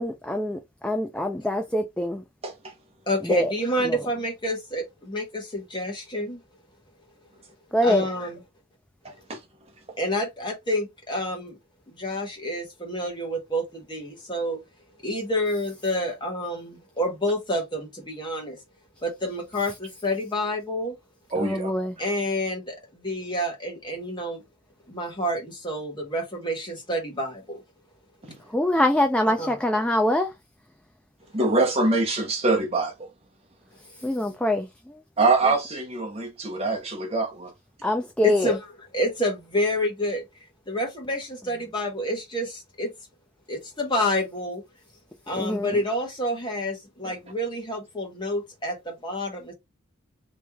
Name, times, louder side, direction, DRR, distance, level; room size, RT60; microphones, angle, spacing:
voice 1, 0.0-2.2 3.3-3.5 7.7-8.0 21.4-21.9 28.5-30.3 34.0-34.6 37.8-38.5 45.4-45.7, left 1 dB, 5° left, 0.4 m, -24 dB
voice 2, 3.1-6.4 7.8-8.4 10.0-11.6 11.9-14.6 15.0-18.6 19.0-20.9 22.0-24.4 24.9-27.6 29.2-29.6 38.2-40.2 40.7-42.9 43.5-44.6 45.3-49.5, equal, 20° left, 1.5 m, -28 dB
voice 3, 9.0-9.4 21.3-21.7 31.3-33.1 35.2-37.5 47.0-47.1, right 3 dB, 30° right, 1.0 m, -24 dB
3.2 x 3.1 x 3.5 m
head